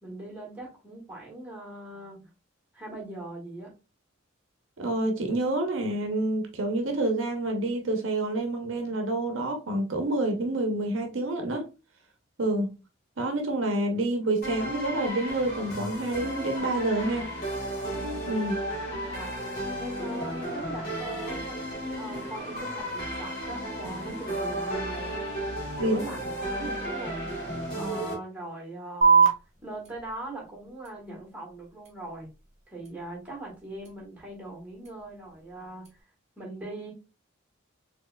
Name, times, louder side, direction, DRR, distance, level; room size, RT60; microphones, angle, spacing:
voice 1, 0.0-2.3 2.7-3.7 18.9-19.3 19.8-21.6 22.0-25.1 25.8-27.4 27.8-32.3 32.7-36.1 36.4-36.9, right 2 dB, 5° right, 1.5 m, -41 dB
voice 2, 4.8-11.6 12.4-12.7 13.2-17.3 18.2-18.6 25.8-26.0, right 2 dB, 65° right, 0.7 m, -28 dB
sound 1, 14.4-28.1, right 1 dB, 45° left, 1.4 m, -34 dB
sound 2, 29.0-36.0, right 5 dB, 35° right, 1.0 m, -29 dB
4.3 x 3.0 x 2.2 m
head